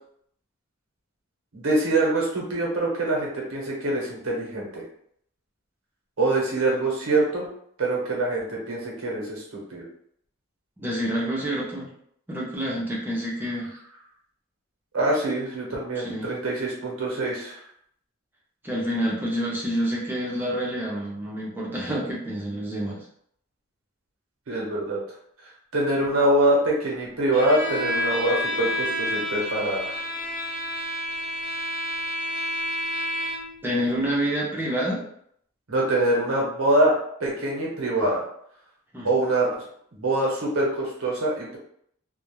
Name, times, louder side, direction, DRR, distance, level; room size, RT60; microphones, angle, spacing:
voice 1, 1.5-4.8 6.2-7.5 7.8-9.4 9.7-9.8 14.9-17.6 24.5-25.0 25.7-29.9 35.7-38.2 39.0-39.5 40.0-41.6, right 2 dB, 85° right, -2 dB, 0.9 m, -24 dB
voice 2, 10.8-11.9 12.3-13.7 16.0-16.3 18.6-23.0 33.6-35.0 38.9-39.1, equal, 10° right, -5 dB, 0.6 m, -28 dB
Bowed string instrument, 27.3-33.6, left 1 dB, 40° left, 0.6 m, -29 dB
2.3 x 2.0 x 3.0 m, 0.68 s
head